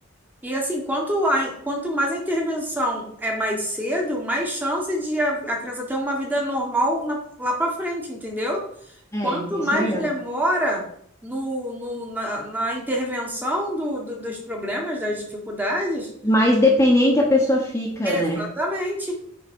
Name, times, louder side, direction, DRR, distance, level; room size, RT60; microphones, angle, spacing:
voice 1, 0.4-8.6 9.2-10.9 11.2-16.1 18.0-19.1, equal, 10° right, 0 dB, 1.5 m, -26 dB
voice 2, 9.1-10.1 16.2-18.4, left 1 dB, 15° left, -2 dB, 1.2 m, -20 dB
9.4 x 3.9 x 4.6 m, 0.67 s
head